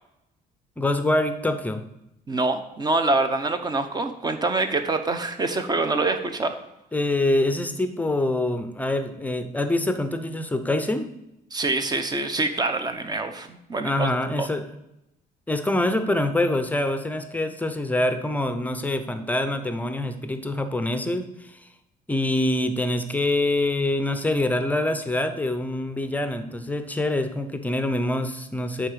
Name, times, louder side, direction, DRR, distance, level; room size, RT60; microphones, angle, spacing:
voice 1, 0.8-1.8 6.9-11.1 13.8-14.7 15.5-21.7 22.1-28.9, left 1 dB, 10° left, 9 dB, 0.6 m, -25 dB
voice 2, 2.3-6.5 11.5-14.1 14.4-14.5, right 3 dB, 25° right, 8 dB, 0.7 m, -25 dB
8.7 x 4.0 x 4.9 m, 0.86 s
cardioid pair, 110°, 17 cm